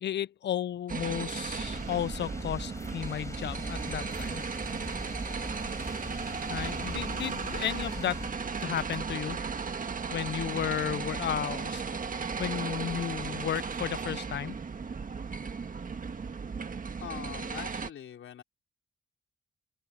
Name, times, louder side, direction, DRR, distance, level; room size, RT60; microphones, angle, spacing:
voice 1, 0.0-4.4 6.5-8.2 8.6-9.4 10.1-11.8 12.4-14.5, left 10 dB, 60° left, 0.5 m, -33 dB
sound 1, 0.9-17.9, right 5 dB, 40° right, 1.6 m, -36 dB
sound 2, 1.5-8.3, left 2 dB, 15° left, 5.7 m, -42 dB
voice 2, 17.0-18.4, left 9 dB, 85° left, 4.6 m, -42 dB
open air
cardioid pair, 85°, 20 cm